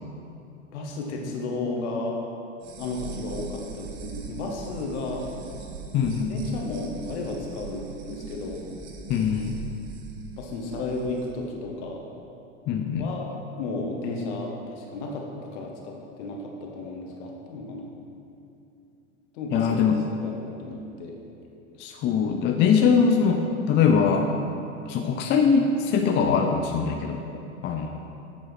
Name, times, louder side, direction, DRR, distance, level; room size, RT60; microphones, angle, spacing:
voice 1, 0.7-2.2 2.8-5.2 6.3-8.6 10.4-12.0 13.0-17.9 19.3-19.8 20.1-21.2, left 2 dB, 60° left, 0 dB, 1.6 m, -33 dB
sound 1, 2.6-11.2, right 4 dB, 45° right, 1.2 m, -40 dB
voice 2, 5.9-6.3 9.1-9.6 12.7-13.1 19.5-20.0 21.8-24.3 24.9-28.0, left 6 dB, 30° left, 3 dB, 0.5 m, -22 dB
8.5 x 5.3 x 6.0 m, 2.7 s
hypercardioid pair, 90°, 38 cm